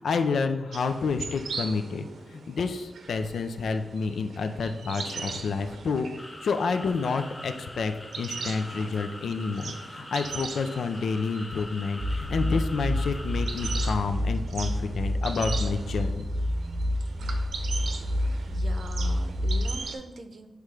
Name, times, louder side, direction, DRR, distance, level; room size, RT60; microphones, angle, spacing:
voice 1, 0.0-6.1 6.4-16.3, left 4 dB, 85° left, 8 dB, 0.5 m, -29 dB
sound 1, 0.7-19.9, right 4 dB, 90° right, 0.8 m, -41 dB
sound 2, 6.2-14.0, left 1 dB, 15° left, 0.6 m, -43 dB
sound 3, 12.0-19.8, left 1 dB, 15° right, 0.8 m, -28 dB
voice 2, 18.2-20.5, right 3 dB, 50° right, 7 dB, 0.6 m, -42 dB
8.6 x 3.2 x 4.9 m, 1.1 s
wide cardioid pair, 155°, 0 cm